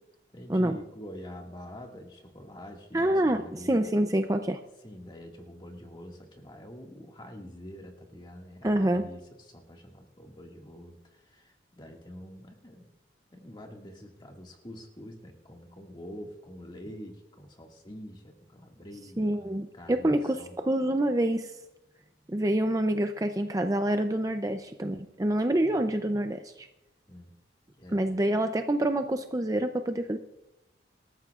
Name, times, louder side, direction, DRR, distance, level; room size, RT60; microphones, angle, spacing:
voice 1, 0.3-3.8 4.8-12.9 13.3-20.6 25.6-25.8 27.1-27.3 27.8-28.1, equal, 25° left, 1 dB, 1.9 m, -46 dB
voice 2, 2.9-4.6 8.6-9.1 19.2-21.5 22.3-26.7 27.9-30.2, right 1 dB, 20° right, 7 dB, 0.5 m, -27 dB
24.5 x 13.5 x 2.4 m, 0.92 s
head